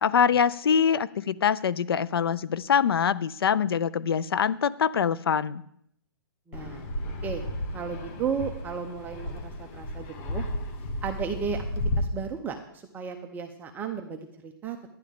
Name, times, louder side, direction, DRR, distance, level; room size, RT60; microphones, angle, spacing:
voice 1, 0.0-5.6, left 7 dB, 75° left, 18 dB, 0.4 m, -24 dB
Fixed-wing aircraft airplane, 6.5-12.0, left 1 dB, 35° left, 1.3 m, -33 dB
voice 2, 6.5-6.8 7.2-7.4 7.7-10.4 11.0-11.6 12.0-12.6 12.9-14.8, right 6 dB, 15° right, 4 dB, 0.7 m, -34 dB
11.5 x 10.5 x 3.7 m, 0.72 s
hypercardioid pair, 140°, 13 cm